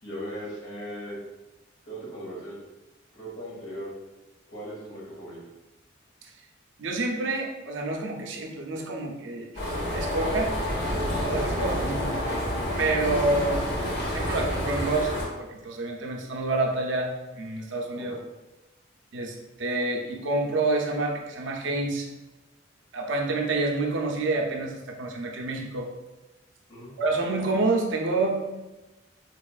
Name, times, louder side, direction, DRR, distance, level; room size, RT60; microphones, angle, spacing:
voice 1, 0.0-1.2 1.8-2.6 3.1-3.9 4.5-5.5 17.9-18.2 26.7-26.9, equal, 85° left, -5 dB, 1.5 m, -38 dB
voice 2, 6.8-9.5 9.8-10.6 11.2-12.2 12.8-13.6 14.1-18.2 19.1-22.1 22.9-25.9 27.0-28.4, right 2 dB, 70° right, 2 dB, 0.5 m, -28 dB
sound 1, 9.5-15.2, equal, 60° left, 1.1 m, -28 dB
4.1 x 2.9 x 2.3 m, 1.1 s
head